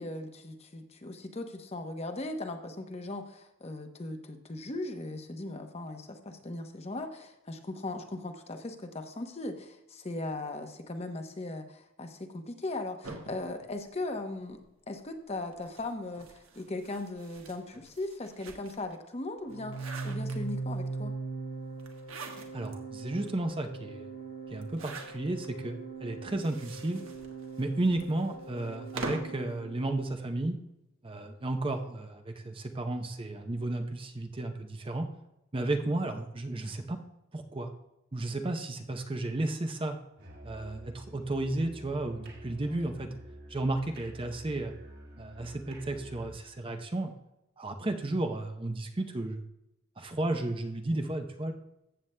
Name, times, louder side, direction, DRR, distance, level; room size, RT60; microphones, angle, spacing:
voice 1, 0.0-14.6 14.9-21.2 42.7-43.0, left 2 dB, 30° left, 6 dB, 0.8 m, -38 dB
sound 1, 13.0-14.6 15.5-18.9 19.4-20.8 21.8-22.8 23.3-23.4 23.6-23.7 24.6-25.5 26.2-29.4, right 3 dB, 75° right, 1.3 m, -44 dB
Organ, 19.4-30.2, right 3 dB, 75° left, 2.8 m, -41 dB
voice 2, 22.5-24.1 24.5-27.0 27.6-30.6 31.0-35.1 35.5-37.0 37.3-37.7 38.1-40.0 40.4-43.1 43.5-44.7 45.2-47.1 47.6-49.4 50.0-51.5, right 2 dB, 25° right, 5 dB, 0.6 m, -33 dB
Musical instrument, 40.2-46.5, right 1 dB, 50° right, 1.8 m, -48 dB
14.5 x 7.9 x 2.2 m, 0.89 s
head